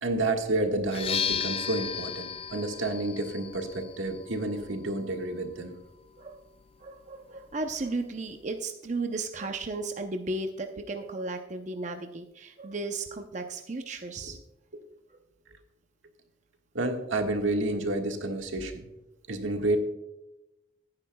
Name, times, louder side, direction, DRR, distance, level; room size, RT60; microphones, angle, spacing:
voice 1, 0.0-5.8 14.2-14.3 16.7-18.9 19.3-19.8, right 2 dB, 85° right, 4 dB, 1.7 m, -30 dB
sound 1, 0.8-8.6, left 7 dB, 30° left, 0.4 m, -37 dB
voice 2, 6.8-14.4, right 2 dB, 40° right, 5 dB, 0.7 m, -34 dB
17.5 x 9.6 x 2.3 m, 0.94 s
head